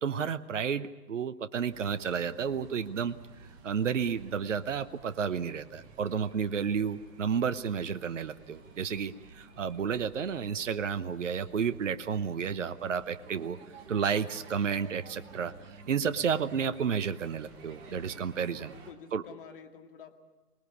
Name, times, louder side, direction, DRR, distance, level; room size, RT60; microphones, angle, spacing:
voice 1, 0.0-3.1 3.6-13.6 13.9-15.5 15.9-18.7 19.1-19.2, right 7 dB, 50° right, 11 dB, 1.0 m, -31 dB
sound 1, 1.7-18.9, right 4 dB, 10° right, 0.9 m, -52 dB
voice 2, 18.7-20.1, left 7 dB, 35° left, 4 dB, 2.3 m, -49 dB
25.5 x 19.5 x 8.3 m, 1.2 s
figure-of-eight pair, 145°, 46 cm